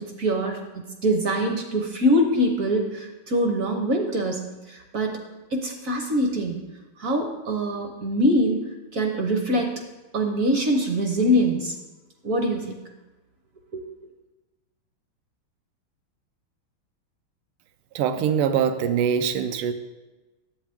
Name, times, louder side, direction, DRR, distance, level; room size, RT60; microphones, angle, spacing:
voice 1, 0.0-5.2 5.5-6.6 7.0-8.6 8.9-9.7 10.1-11.7 12.2-12.8 13.7-13.8, equal, 55° right, 3 dB, 0.9 m, -24 dB
voice 2, 17.9-19.7, right 8 dB, 85° right, 10 dB, 1.5 m, -23 dB
10.5 x 8.1 x 3.5 m, 1.1 s
omnidirectional pair, 2.4 m